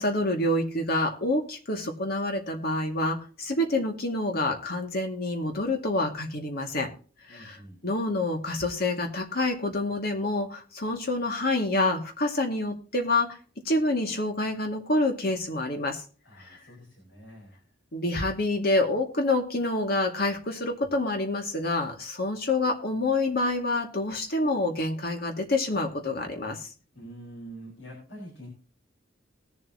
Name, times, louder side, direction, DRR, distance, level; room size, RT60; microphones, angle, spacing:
voice 1, 0.0-6.9 7.3-13.4 13.7-16.0 16.5-16.6 17.9-26.7, left 2 dB, 55° left, 3 dB, 2.2 m, -27 dB
voice 2, 7.3-7.8 16.2-17.6 26.9-28.5, right 1 dB, 70° left, -2 dB, 4.6 m, -45 dB
19.5 x 7.5 x 2.9 m, 0.38 s
head